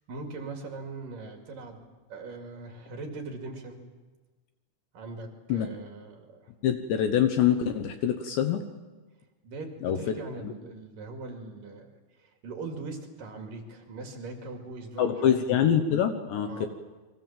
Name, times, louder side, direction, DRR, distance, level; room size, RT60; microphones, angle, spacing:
voice 1, 0.1-3.8 4.9-6.5 9.4-11.9 12.2-15.4 16.5-16.7, right 3 dB, 50° right, 3 dB, 3.4 m, -41 dB
voice 2, 6.6-8.6 9.8-10.0 10.4-10.5 15.0-16.7, left 9 dB, 70° left, 7 dB, 3.0 m, -25 dB
29.5 x 23.5 x 7.5 m, 1.3 s
omnidirectional pair, 5.9 m